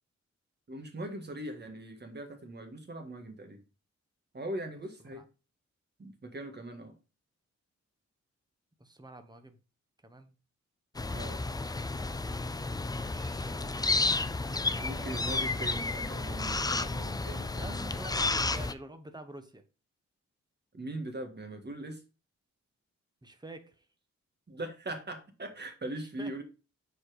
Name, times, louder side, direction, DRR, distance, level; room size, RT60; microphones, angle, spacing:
voice 1, 0.7-3.6 4.3-5.2 6.0-6.9 11.1-11.4 14.8-18.1 20.7-22.0 24.5-26.4, right 1 dB, 35° right, 1.7 m, -40 dB
voice 2, 8.8-9.6 10.0-10.3 12.1-15.2 17.6-19.6 23.2-23.9 25.9-26.4, right 1 dB, 15° right, 1.0 m, -49 dB
sound 1, 10.9-18.7, left 3 dB, 15° left, 0.4 m, -32 dB
7.6 x 4.3 x 4.9 m
wide cardioid pair, 125°, 29 cm